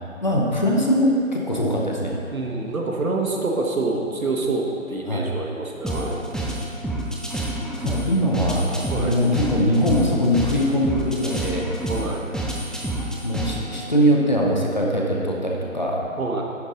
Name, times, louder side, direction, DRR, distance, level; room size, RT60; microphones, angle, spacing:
voice 1, 0.2-2.1 5.1-5.3 7.8-11.7 13.2-16.0, equal, 35° left, -2 dB, 0.7 m, -21 dB
voice 2, 2.3-6.2 8.9-9.2 11.8-12.2 16.2-16.4, right 3 dB, 90° right, 0 dB, 1.3 m, -26 dB
sound 1, 5.8-13.8, right 1 dB, ahead, 0.4 m, -29 dB
10.5 x 4.1 x 3.7 m, 2.5 s
figure-of-eight pair, 170°, 40 cm